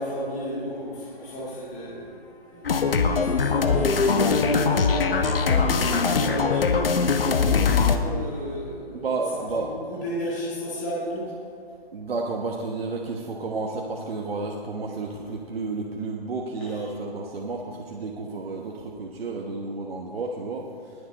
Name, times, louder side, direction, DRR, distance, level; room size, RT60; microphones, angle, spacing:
voice 1, 0.0-7.0 7.5-9.1 9.9-11.3 16.6-16.7, equal, 20° left, -8 dB, 1.8 m, -32 dB
sound 1, 2.6-8.0, left 5 dB, 65° left, 1.0 m, -21 dB
voice 2, 7.2-7.6 8.9-9.7 11.9-20.9, right 3 dB, 70° right, 0 dB, 1.3 m, -31 dB
19.5 x 7.0 x 4.2 m, 2.4 s
hypercardioid pair, 175°, 31 cm